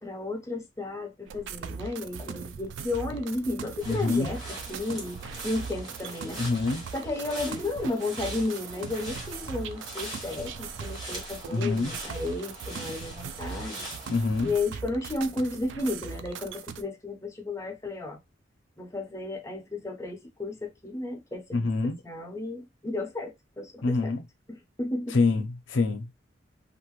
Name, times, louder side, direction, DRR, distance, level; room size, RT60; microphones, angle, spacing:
voice 1, 0.0-4.4 4.7-6.4 6.9-13.8 14.4-18.2 18.8-21.7 22.0-24.1 24.8-25.2, left 2 dB, 15° left, 0.7 m, -33 dB
sound 1, 1.3-16.8, right 6 dB, 70° right, 0.4 m, -40 dB
sound 2, 3.8-14.5, right 1 dB, 20° right, 1.2 m, -42 dB
voice 2, 3.9-4.3 6.4-6.8 11.5-12.0 14.1-14.5 21.5-22.0 23.8-24.2 25.1-26.1, left 3 dB, 80° left, 0.6 m, -26 dB
2.6 x 2.6 x 3.0 m
head